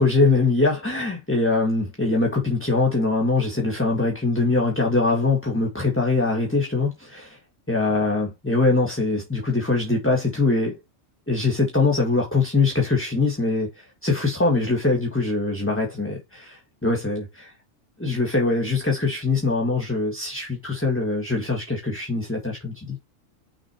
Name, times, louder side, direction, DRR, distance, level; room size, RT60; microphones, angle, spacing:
voice 1, 0.0-7.4 7.7-10.8 11.3-17.5 18.0-23.0, left 3 dB, 10° left, 1.7 m, -23 dB
6.5 x 4.3 x 4.5 m
omnidirectional pair, 1.4 m